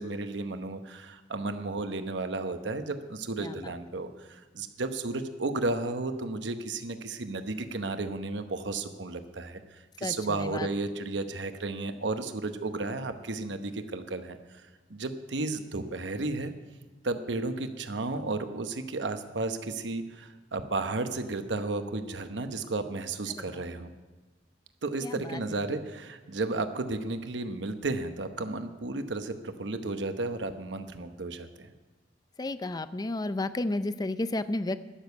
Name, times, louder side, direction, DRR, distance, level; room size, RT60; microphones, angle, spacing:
voice 1, 0.0-14.6 14.9-16.5 17.0-23.9 24.8-31.7, right 3 dB, 85° right, 8 dB, 0.9 m, -33 dB
voice 2, 10.0-10.7 23.3-23.4 25.0-25.4 32.4-34.8, left 2 dB, 20° left, 13 dB, 0.5 m, -32 dB
12.5 x 7.1 x 9.3 m, 1.3 s
head